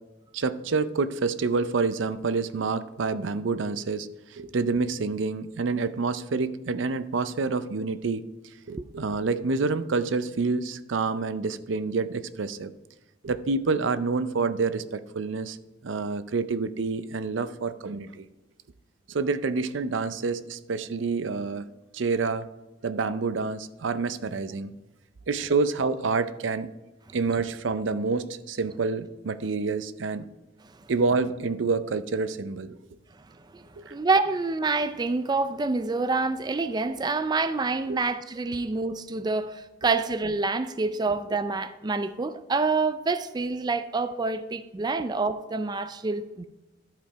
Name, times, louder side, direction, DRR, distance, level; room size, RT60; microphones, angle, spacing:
voice 1, 0.3-8.3 8.7-12.7 13.2-15.6 15.8-18.3 19.1-21.7 21.9-22.5 22.8-24.7 25.3-26.7 27.1-30.3 30.9-32.8 33.8-34.0 37.9-38.0, right 4 dB, 85° right, 0.5 m, -28 dB
voice 2, 33.9-46.4, right 3 dB, 20° right, 0.4 m, -27 dB
11.5 x 5.1 x 4.6 m
head